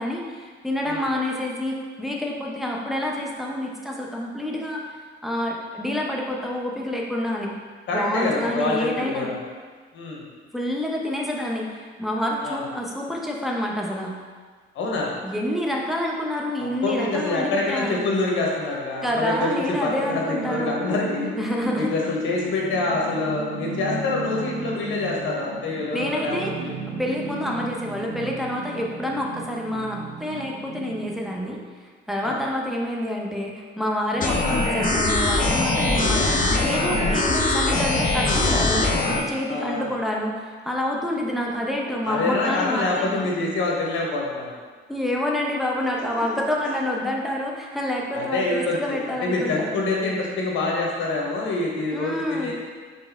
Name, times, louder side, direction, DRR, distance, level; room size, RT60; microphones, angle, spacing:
voice 1, 0.0-7.5 7.9-9.3 10.5-14.1 15.2-18.0 19.0-20.7 21.4-21.9 25.9-26.5 26.9-31.6 32.1-43.3 44.9-49.8 51.9-52.5, left 1 dB, ahead, -2 dB, 0.7 m, -28 dB
voice 2, 7.9-9.4 9.9-10.2 12.4-12.7 14.7-15.1 16.6-21.3 21.7-26.8 27.2-27.4 32.2-32.4 34.1-34.3 39.5-39.9 42.0-44.6 48.1-52.5, left 3 dB, 75° left, -2 dB, 1.0 m, -26 dB
sound 1, 19.3-31.3, right 3 dB, 65° right, 0.7 m, -35 dB
sound 2, 34.2-39.2, left 2 dB, 45° left, 0.6 m, -22 dB
4.2 x 3.4 x 3.5 m, 1.5 s
cardioid pair, 90°, 20 cm